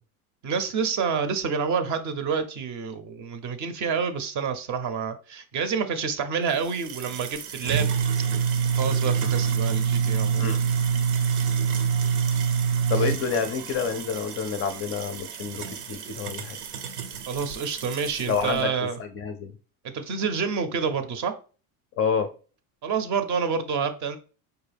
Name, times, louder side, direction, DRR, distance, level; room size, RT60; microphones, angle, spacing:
voice 1, 0.4-7.9 8.3-8.4 8.7-10.5 13.0-13.1 17.3-19.0 19.8-21.3 22.8-24.2, right 6 dB, 40° right, 9 dB, 0.6 m, -28 dB
sound 1, 6.5-18.6, right 7 dB, 85° right, 0.7 m, -27 dB
voice 2, 12.9-16.6 18.3-18.7 19.0-19.5 22.0-22.3, left 6 dB, 35° left, 7 dB, 0.4 m, -28 dB
4.6 x 2.2 x 3.3 m, 0.37 s
supercardioid pair, 115°, 44 cm